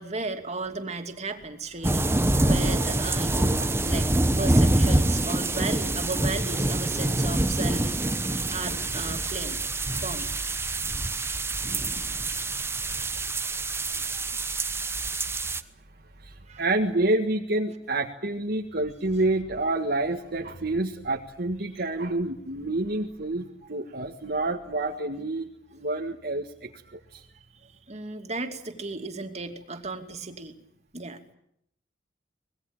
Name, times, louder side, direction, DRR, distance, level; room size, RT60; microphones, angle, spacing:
voice 1, 0.0-4.1 4.4-9.6 10.0-10.7 16.5-16.6 27.9-30.5 30.9-31.3, right 3 dB, 35° right, 5 dB, 2.7 m, -35 dB
sound 1, 1.8-15.6, right 2 dB, 15° right, 1.0 m, -26 dB
voice 2, 2.1-2.7 3.0-3.1 3.6-3.7 4.3-4.6 5.0-5.1 8.3-8.5 13.9-14.2 16.2-27.2, right 2 dB, 55° right, 1 dB, 1.7 m, -29 dB
25.0 x 20.0 x 9.0 m, 0.75 s
head